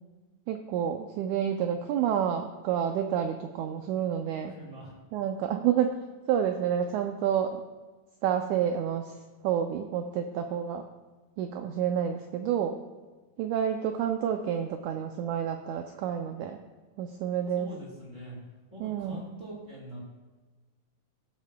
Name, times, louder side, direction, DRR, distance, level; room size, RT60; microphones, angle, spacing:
voice 1, 0.5-4.5 5.1-5.9 6.3-7.6 8.2-9.1 9.4-10.9 11.4-12.8 13.4-16.6 17.0-17.7 18.8-19.2, right 9 dB, 90° right, 5 dB, 1.7 m, -29 dB
voice 2, 4.5-4.9 17.5-18.4 18.7-20.0, right 1 dB, 25° right, -4 dB, 2.0 m, -43 dB
16.5 x 8.2 x 2.2 m, 1.3 s
omnidirectional pair, 4.0 m